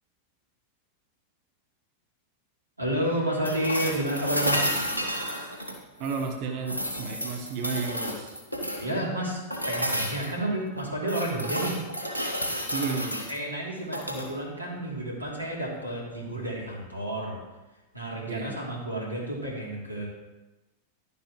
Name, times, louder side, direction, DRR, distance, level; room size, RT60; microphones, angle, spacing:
voice 1, 2.8-4.8 8.8-9.4 9.7-11.8 13.3-17.4 17.9-20.1, right 1 dB, 85° right, -3 dB, 3.3 m, -30 dB
sound 1, 3.4-6.3 6.6-8.9 9.5-10.3 10.8-13.3 13.8-14.3 16.3-16.4, equal, 85° left, 1.7 m, -31 dB
voice 2, 6.0-8.4 12.7-13.2 18.3-18.6, right 5 dB, 45° right, 4 dB, 1.3 m, -32 dB
12.0 x 11.0 x 3.2 m, 1.1 s
figure-of-eight pair, 90°, 0 cm